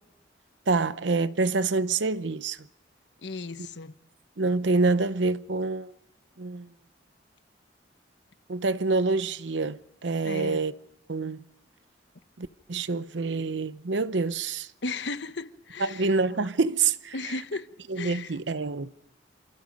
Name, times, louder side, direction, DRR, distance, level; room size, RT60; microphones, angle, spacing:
voice 1, 0.7-2.6 4.4-5.9 6.4-6.7 8.5-10.7 11.1-11.4 12.4-14.7 15.8-17.3 17.9-18.9, right 3 dB, 80° right, 0.8 m, -27 dB
voice 2, 3.2-3.9 10.2-10.6 14.8-16.1 17.1-17.7 18.0-18.3, left 3 dB, 75° left, 1.1 m, -35 dB
27.5 x 27.5 x 5.4 m
head